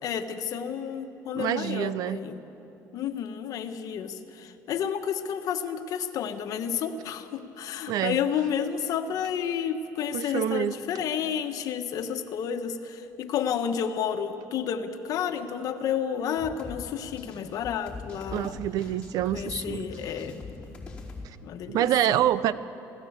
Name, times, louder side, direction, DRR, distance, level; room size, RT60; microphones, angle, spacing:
voice 1, 0.0-2.4 2.9-18.6 19.3-20.4 21.4-22.2, left 8 dB, 65° left, 7 dB, 1.4 m, -31 dB
voice 2, 1.3-2.2 7.9-8.2 10.1-10.8 18.3-19.8 21.7-22.5, right 12 dB, 70° right, 16 dB, 0.7 m, -26 dB
sound 1, 16.4-21.3, left 3 dB, 20° left, 4.6 m, -42 dB
26.5 x 17.0 x 8.2 m, 3.0 s
cardioid pair, 120°, 7 cm